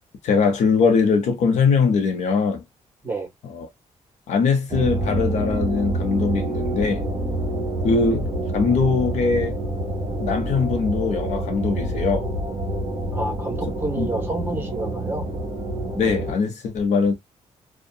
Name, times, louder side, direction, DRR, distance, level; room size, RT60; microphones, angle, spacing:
voice 1, 0.2-2.6 3.5-3.7 4.3-7.0 7.8-9.6 10.2-12.3 14.0-14.1 16.0-17.1, left 5 dB, 75° left, 0.9 m, -21 dB
sound 1, 4.7-16.3, right 1 dB, 35° right, 1.4 m, -27 dB
voice 2, 13.1-15.3, right 2 dB, 20° right, 1.3 m, -29 dB
2.7 x 2.4 x 2.2 m
cardioid pair, 130°, 12 cm